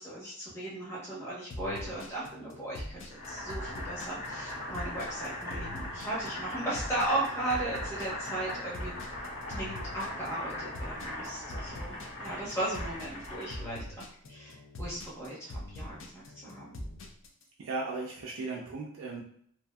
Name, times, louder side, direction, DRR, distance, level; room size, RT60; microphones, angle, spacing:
voice 1, 0.0-9.2 9.5-16.8, right 1 dB, 10° left, -7 dB, 0.9 m, -37 dB
sound 1, 1.5-17.4, left 1 dB, 60° left, 0.4 m, -43 dB
Boiling, 3.1-13.7, left 1 dB, 75° left, 1.1 m, -40 dB
voice 2, 17.6-19.2, right 3 dB, 70° right, -3 dB, 0.4 m, -36 dB
2.6 x 2.5 x 2.2 m, 0.65 s
head